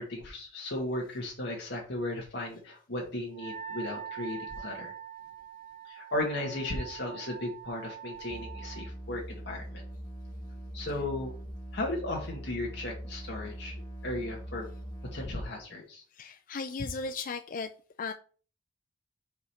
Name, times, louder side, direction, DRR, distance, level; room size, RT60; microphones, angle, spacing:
voice 1, 0.0-4.9 5.9-9.8 10.7-11.3 11.7-13.7 14.0-14.7 15.1-16.0, left 1 dB, 60° left, -1 dB, 1.9 m, -35 dB
Wind instrument woodwind instrument, 3.3-8.9, right 8 dB, 35° right, 0.8 m, -43 dB
sound 1, 8.3-15.3, equal, 15° left, 1.4 m, -42 dB
voice 2, 16.1-17.7 18.0-18.1, left 4 dB, 45° left, 7 dB, 0.5 m, -36 dB
5.4 x 4.9 x 5.8 m, 0.40 s
head